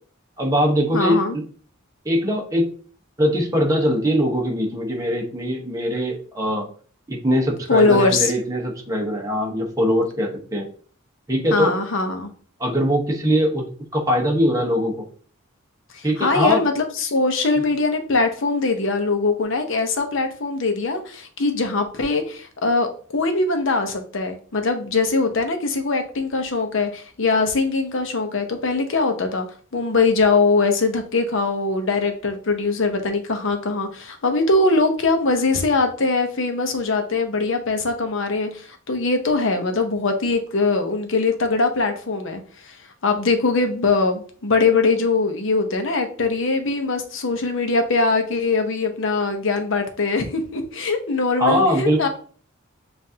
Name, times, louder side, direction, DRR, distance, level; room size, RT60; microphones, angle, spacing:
voice 1, 0.4-1.4 2.0-2.7 3.2-6.7 7.1-10.7 11.3-11.7 12.6-15.1 16.0-16.7 51.4-52.1, equal, 15° right, 0 dB, 1.0 m, -21 dB
voice 2, 0.9-1.4 7.7-8.3 11.5-12.3 15.9-29.5 29.7-42.4 42.7-42.8 43.0-52.1, left 3 dB, 65° left, 6 dB, 0.8 m, -21 dB
7.3 x 2.6 x 2.8 m, 0.44 s
head